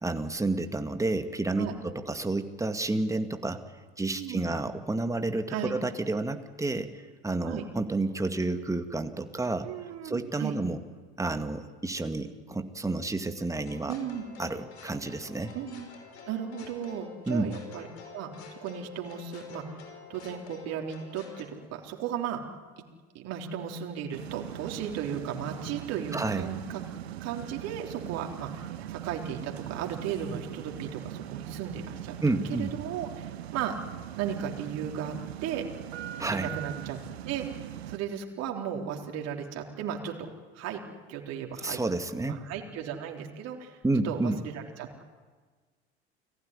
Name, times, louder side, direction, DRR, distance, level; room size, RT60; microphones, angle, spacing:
voice 1, 0.0-3.6 4.0-6.9 7.2-9.7 10.0-10.8 11.2-14.0 14.4-15.5 17.3-17.5 26.1-26.5 32.2-32.7 36.2-36.5 41.6-42.4 43.8-44.4, right 2 dB, 10° right, 8 dB, 2.2 m, -30 dB
voice 2, 4.1-4.5 5.5-5.7 7.4-7.6 9.6-10.6 13.9-14.2 15.5-15.9 16.3-18.3 18.6-19.7 20.1-22.4 23.1-26.8 27.2-32.2 32.6-33.8 34.2-35.1 35.4-35.6 36.3-37.0 37.3-40.3 40.5-40.8 41.1-41.8 42.2-43.8 44.0-45.1, right 8 dB, 50° right, 2 dB, 3.9 m, -35 dB
sound 1, 13.7-21.4, left 6 dB, 70° left, 5.6 m, -48 dB
sound 2, 24.1-38.0, right 12 dB, 70° right, 1.6 m, -40 dB
29.5 x 20.0 x 9.9 m, 1.4 s
figure-of-eight pair, 70°, 33 cm